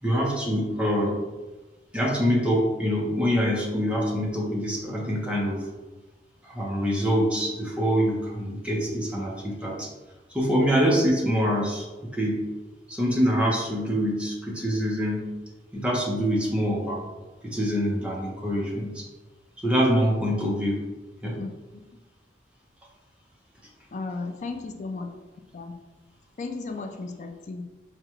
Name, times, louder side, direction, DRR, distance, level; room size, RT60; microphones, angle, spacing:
voice 1, 0.0-1.2 1.9-5.7 6.4-9.9 10.3-12.5 12.9-15.3 15.7-17.1 17.4-19.1 19.6-20.8 21.2-21.4, equal, 5° right, -3 dB, 0.6 m, -25 dB
voice 2, 23.9-25.1 25.5-25.7 26.4-27.6, left 3 dB, 40° left, 5 dB, 0.3 m, -34 dB
4.7 x 2.2 x 2.9 m, 1.2 s
head